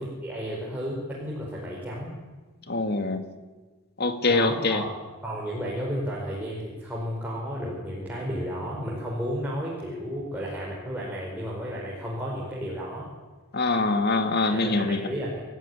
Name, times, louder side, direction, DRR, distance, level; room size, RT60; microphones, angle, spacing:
voice 1, 0.0-2.1 4.2-13.1 14.4-15.4, equal, 10° right, -5 dB, 5.1 m, -33 dB
voice 2, 2.7-3.2 4.0-4.8 13.5-15.0, left 3 dB, 45° left, 7 dB, 2.1 m, -24 dB
27.5 x 14.5 x 10.0 m, 1.3 s
head